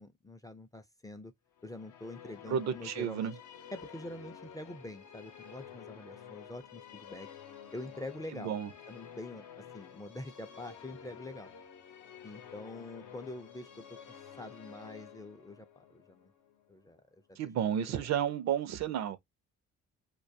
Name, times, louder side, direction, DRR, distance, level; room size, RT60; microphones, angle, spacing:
voice 1, 0.0-1.3 1.6-3.3 3.7-7.3 7.7-8.6 8.9-11.5 12.2-13.8 14.4-16.3 16.7-17.0 17.3-17.4 17.9-18.1, left 1 dB, 10° left, 0.3 m, -45 dB
Musical instrument, 1.6-17.0, left 8 dB, 75° left, 0.7 m, -51 dB
voice 2, 2.5-3.4 8.3-8.7 17.4-19.2, right 8 dB, 65° right, 0.4 m, -32 dB
2.2 x 2.2 x 2.6 m
cardioid pair, 90°, 30 cm